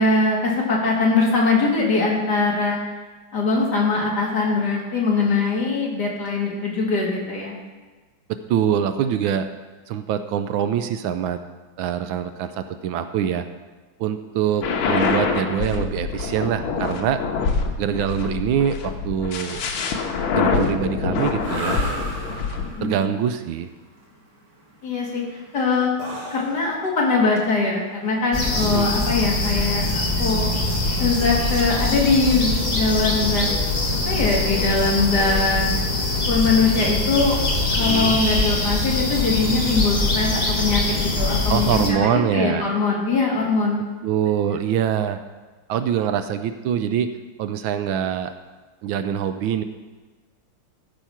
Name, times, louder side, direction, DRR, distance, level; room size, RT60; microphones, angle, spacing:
voice 1, 0.0-2.8 3.3-7.6 22.8-23.0 24.8-25.2 25.5-25.9 26.3-30.5 31.0-33.5 34.1-35.6 36.3-37.4 37.7-43.8, left 3 dB, 50° left, -2 dB, 2.4 m, -22 dB
voice 2, 8.3-9.5 9.9-11.4 11.8-13.4 14.0-17.2 17.8-19.6 20.3-21.8 22.8-23.7 28.6-28.9 37.8-38.2 41.5-42.7 44.0-45.2 45.7-47.1 47.4-48.3 48.8-49.6, right 8 dB, 80° right, 9 dB, 1.3 m, -24 dB
sound 1, 14.6-22.7, left 5 dB, 85° left, 1.8 m, -25 dB
sound 2, 21.3-29.4, right 2 dB, 55° right, 2.9 m, -35 dB
sound 3, 28.3-41.9, left 2 dB, 25° left, 1.1 m, -23 dB
14.0 x 5.2 x 5.7 m, 1.3 s
omnidirectional pair, 2.3 m